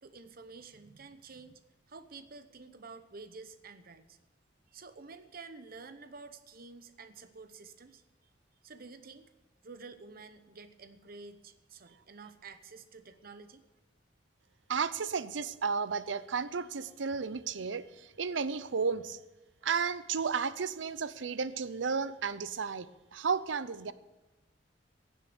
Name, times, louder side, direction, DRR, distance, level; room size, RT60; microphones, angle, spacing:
voice 1, 0.0-1.6 1.9-4.2 4.7-8.0 8.6-9.3 9.6-13.6, right 4 dB, 55° right, 10 dB, 0.9 m, -50 dB
voice 2, 14.7-19.2 19.6-23.9, right 5 dB, 80° right, 15 dB, 0.6 m, -33 dB
16.5 x 7.5 x 6.9 m, 1.1 s
head